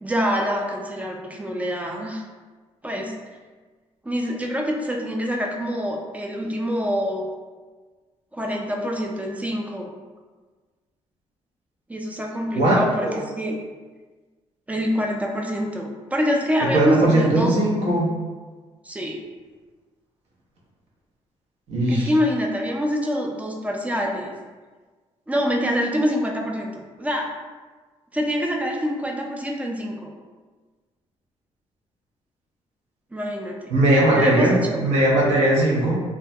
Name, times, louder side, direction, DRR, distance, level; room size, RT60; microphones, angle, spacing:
voice 1, 0.0-2.2 2.8-3.1 4.0-7.3 8.3-9.9 11.9-13.6 14.7-17.6 18.8-19.2 21.9-24.3 25.3-27.3 28.1-30.1 33.1-33.7 34.0-34.8, equal, 15° right, 0 dB, 0.3 m, -25 dB
voice 2, 12.5-13.1 16.6-18.1 21.7-22.1 33.7-35.9, right 1 dB, 85° right, -5 dB, 0.7 m, -19 dB
2.2 x 2.1 x 2.7 m, 1.4 s
cardioid pair, 90°, 11 cm